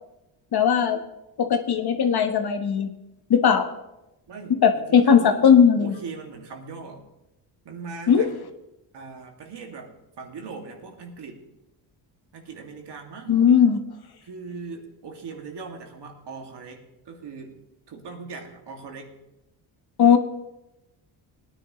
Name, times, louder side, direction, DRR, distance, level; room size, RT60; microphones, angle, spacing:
voice 1, 0.5-1.0 1.4-2.9 3.3-3.7 4.5-5.9 8.1-8.3 13.3-13.8 20.0-20.2, left 7 dB, 55° left, 6 dB, 1.3 m, -18 dB
voice 2, 4.3-5.4 5.8-7.0 7.6-8.3 8.9-11.5 12.3-13.4 14.2-17.6 17.9-19.1, right 4 dB, 65° right, 1 dB, 2.4 m, -40 dB
19.0 x 10.0 x 3.2 m, 0.93 s
cardioid pair, 85°, 45 cm